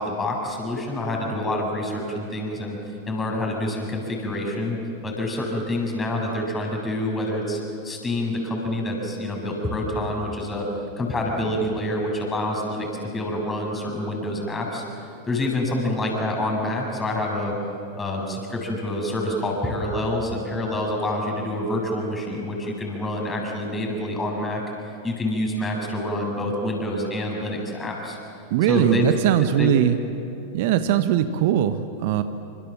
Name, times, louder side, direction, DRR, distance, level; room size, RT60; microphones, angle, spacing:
voice 1, 0.0-2.8 3.1-4.8 5.0-7.6 7.8-10.7 11.0-14.8 15.3-17.5 17.9-24.6 25.0-28.2 28.7-29.1 29.6-29.7, left 1 dB, 15° left, 0 dB, 7.9 m, -27 dB
voice 2, 28.5-30.0 30.5-32.2, right 10 dB, 50° right, 10 dB, 1.2 m, -20 dB
29.5 x 26.5 x 7.6 m, 2.8 s
figure-of-eight pair, 90°, 0 cm